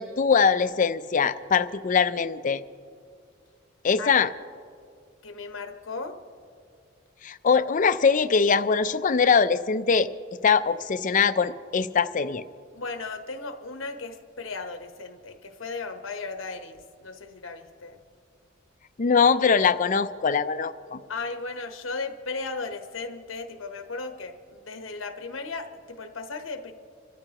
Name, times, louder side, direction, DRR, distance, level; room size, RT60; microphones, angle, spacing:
voice 1, 0.0-2.6 3.8-4.3 7.2-10.1 10.4-12.4 19.0-21.0, left 5 dB, 40° left, 12 dB, 0.5 m, -22 dB
voice 2, 5.2-6.2 12.7-18.0 21.1-26.7, left 3 dB, 80° left, 6 dB, 1.1 m, -36 dB
26.0 x 13.5 x 2.9 m, 2.2 s
head